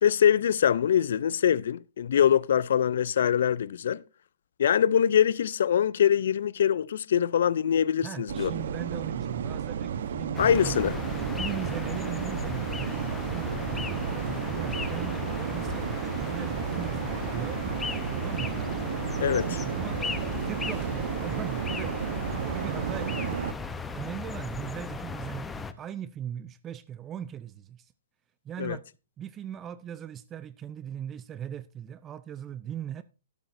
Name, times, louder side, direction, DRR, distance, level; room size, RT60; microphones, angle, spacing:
voice 1, 0.0-4.0 4.6-8.5 10.4-11.0 19.2-19.6 28.6-28.8, left 9 dB, 65° left, 0.4 m, -23 dB
voice 2, 8.0-10.8 11.4-17.6 18.2-18.6 19.2-22.0 22.3-23.3 23.9-27.9 28.4-28.8 29.2-33.0, right 9 dB, 20° right, 0.5 m, -39 dB
sound 1, 8.3-23.5, right 7 dB, 60° right, 1.0 m, -32 dB
sound 2, 10.3-25.7, left 5 dB, 10° left, 0.8 m, -36 dB
sound 3, 19.2-25.4, right 1 dB, 45° right, 7.7 m, -50 dB
12.0 x 11.5 x 2.6 m
hypercardioid pair, 125°, 0 cm